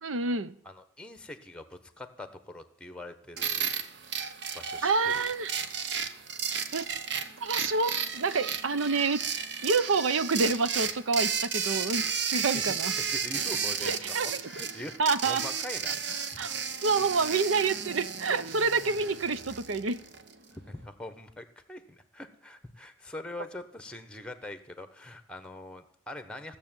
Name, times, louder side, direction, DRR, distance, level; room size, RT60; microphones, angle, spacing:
voice 1, 0.0-0.5 4.8-5.5 6.7-6.9 7.4-9.2 9.6-12.9 13.8-14.3 15.0-15.4 16.4-16.5 16.8-20.0, right 4 dB, 85° right, 13 dB, 0.7 m, -28 dB
voice 2, 0.6-3.7 4.5-5.3 12.5-12.6 13.1-16.4 20.6-26.6, left 1 dB, 5° left, 10 dB, 1.0 m, -43 dB
sound 1, 3.4-20.3, right 7 dB, 60° right, 0.9 m, -33 dB
16.0 x 7.0 x 9.0 m, 0.65 s
head